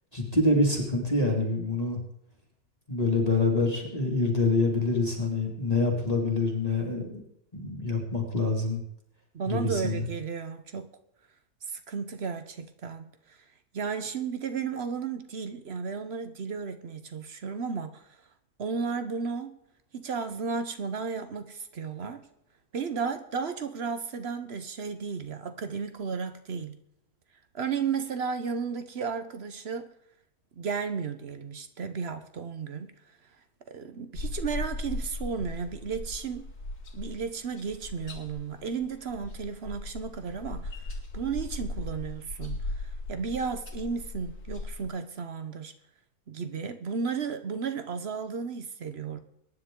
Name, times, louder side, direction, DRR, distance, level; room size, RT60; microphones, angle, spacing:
voice 1, 0.1-2.0 2.9-7.1 7.5-8.8 9.5-9.9, left 2 dB, 25° left, 2.2 m, -26 dB
voice 2, 9.3-10.9 11.7-13.4 13.7-18.2 18.6-19.6 19.9-22.2 22.7-26.8 27.5-29.9 30.6-32.9 33.7-36.5 36.9-45.7 46.3-49.2, right 5 dB, 50° right, 1.0 m, -34 dB
sound 1, 34.1-44.9, left 2 dB, 75° left, 2.5 m, -38 dB
23.0 x 10.0 x 3.7 m
omnidirectional pair, 1.6 m